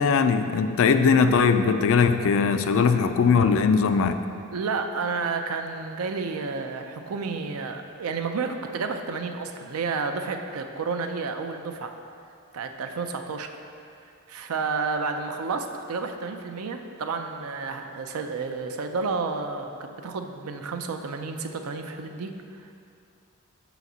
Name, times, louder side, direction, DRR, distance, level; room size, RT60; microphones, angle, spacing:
voice 1, 0.0-4.2, left 5 dB, 65° left, 9 dB, 0.4 m, -20 dB
voice 2, 4.5-11.9 12.5-13.5 14.3-22.8, right 4 dB, 85° right, 6 dB, 0.5 m, -31 dB
5.7 x 4.0 x 6.1 m, 2.5 s
head